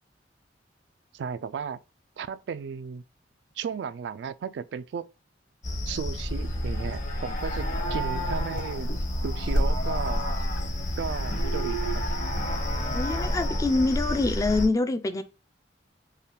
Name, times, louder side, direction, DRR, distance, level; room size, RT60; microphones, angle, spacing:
voice 1, 1.1-1.8 2.2-3.0 3.6-5.0 5.9-8.9 9.2-10.3 11.0-12.0, right 6 dB, 65° right, 0.3 m, -34 dB
sound 1, 5.6-14.7, equal, 45° left, 1.0 m, -29 dB
sound 2, 7.4-13.5, equal, 75° left, 0.9 m, -45 dB
voice 2, 12.9-15.2, left 2 dB, 20° left, 0.3 m, -25 dB
5.4 x 2.2 x 3.2 m
head